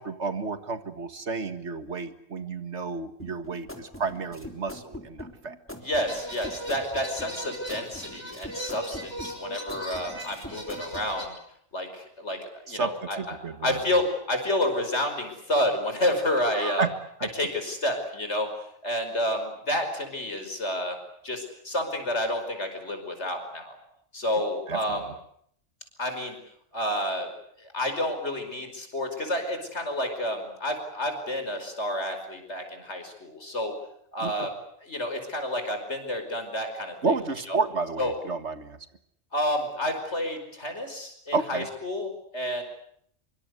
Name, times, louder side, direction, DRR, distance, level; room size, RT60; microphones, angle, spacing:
voice 1, 0.0-5.6 12.7-12.9 13.2-13.8 16.5-16.9 17.2-17.3 24.7-25.0 34.2-34.5 37.0-38.8 41.3-41.7, right 4 dB, 70° right, 10 dB, 2.1 m, -31 dB
sound 1, 3.2-11.1, left 1 dB, 10° left, 3.5 m, -42 dB
voice 2, 5.8-11.4 11.7-13.4 13.6-16.9 17.3-18.5 18.8-21.0 21.2-23.8 24.1-25.1 26.0-26.4 26.7-27.3 27.6-33.7 34.1-34.5 34.8-37.0 37.5-37.6 38.0-38.1 39.3-42.6, left 1 dB, 70° left, 6 dB, 5.6 m, -29 dB
sound 2, 6.1-11.3, equal, 20° right, 7.3 m, -39 dB
25.5 x 24.0 x 8.2 m, 0.69 s
omnidirectional pair, 1.2 m